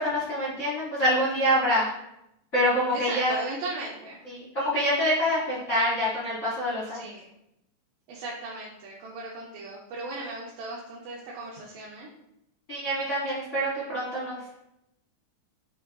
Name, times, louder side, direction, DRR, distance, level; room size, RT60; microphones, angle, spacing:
voice 1, 0.0-1.9 2.5-3.3 4.3-7.0 12.7-14.4, equal, 65° left, -10 dB, 0.8 m, -26 dB
voice 2, 2.9-4.2 6.9-7.3 8.1-12.1, right 2 dB, 80° right, -4 dB, 2.0 m, -37 dB
5.4 x 2.3 x 2.2 m, 0.81 s
omnidirectional pair, 3.9 m